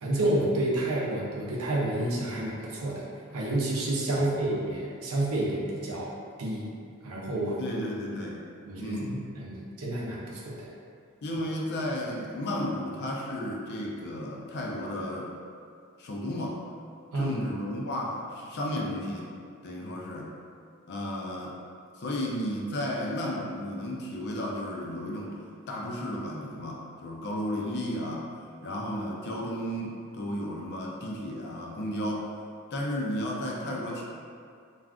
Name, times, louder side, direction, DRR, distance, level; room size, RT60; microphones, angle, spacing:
voice 1, 0.0-3.0 3.3-6.1 6.4-6.7 7.0-7.6 8.6-10.7 17.1-17.4, right 1 dB, 75° right, -4 dB, 0.6 m, -29 dB
voice 2, 7.6-8.4 8.8-9.1 11.2-15.3 16.0-16.6 17.1-19.3 19.6-20.3 20.9-21.6 22.0-25.4 25.7-28.3 28.6-32.3 32.7-34.0, left 1 dB, 50° left, -2 dB, 0.4 m, -33 dB
2.4 x 2.3 x 3.4 m, 2.3 s
head